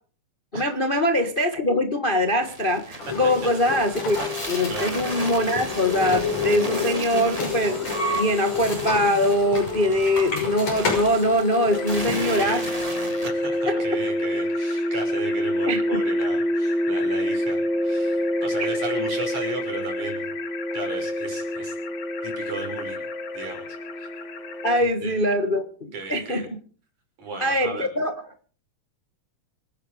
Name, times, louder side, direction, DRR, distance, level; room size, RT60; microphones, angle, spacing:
voice 1, 0.5-4.2 4.5-7.8 8.1-12.7 13.7-13.8 15.7-16.0 24.6-26.5 27.4-28.1, equal, 35° left, 7 dB, 0.9 m, -23 dB
sound 1, 2.4-13.3, right 1 dB, 10° right, 2.7 m, -36 dB
sound 2, 3.0-12.4, left 4 dB, 65° left, 7.1 m, -29 dB
voice 2, 4.7-5.0 12.1-12.7 13.2-20.3 20.7-21.8 22.2-23.1 23.3-23.7 24.0-24.1 24.8-25.1 25.9-26.5 27.2-27.9, right 3 dB, 80° right, 2 dB, 7.1 m, -35 dB
sound 3, 11.7-24.8, left 1 dB, 80° left, 3.4 m, -27 dB
26.0 x 10.5 x 5.0 m, 0.42 s
omnidirectional pair, 3.3 m